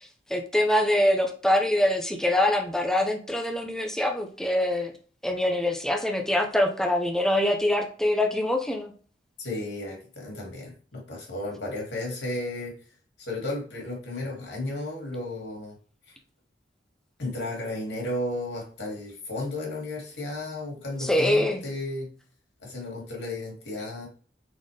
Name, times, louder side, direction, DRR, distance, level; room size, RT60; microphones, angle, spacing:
voice 1, 0.3-4.9 5.2-8.9 21.0-21.6, left 1 dB, 5° left, 3 dB, 0.6 m, -24 dB
voice 2, 9.4-12.7 13.2-15.8 16.1-16.2 17.2-22.1 22.6-24.1, left 2 dB, 75° left, -2 dB, 2.0 m, -33 dB
4.2 x 3.8 x 3.2 m, 0.41 s
head